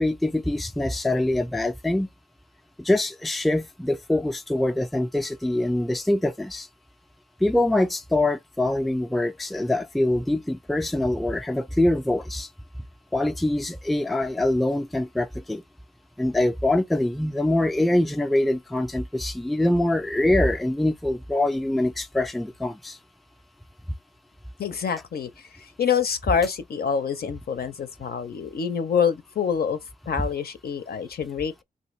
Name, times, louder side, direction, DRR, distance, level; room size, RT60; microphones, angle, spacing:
voice 1, 0.0-2.1 2.8-6.7 7.4-12.5 13.1-15.6 16.2-23.0, left 1 dB, ahead, 0.4 m, -24 dB
voice 2, 24.6-29.8 30.1-31.6, left 7 dB, 65° left, 0.6 m, -26 dB
2.8 x 2.6 x 3.1 m
cardioid pair, 50°, 17 cm